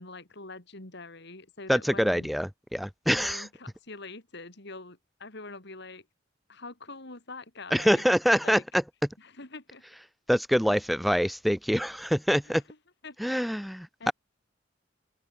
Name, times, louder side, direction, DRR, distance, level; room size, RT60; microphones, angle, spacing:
voice 1, 0.0-2.3 3.1-6.1 6.5-8.0 8.4-8.6 9.2-9.8 12.4-12.8 13.0-13.2 14.0-14.1, left 3 dB, 60° left, 3.8 m, -44 dB
voice 2, 1.7-3.5 7.7-8.8 10.3-12.6 13.2-14.1, equal, ahead, 0.6 m, -25 dB
open air
head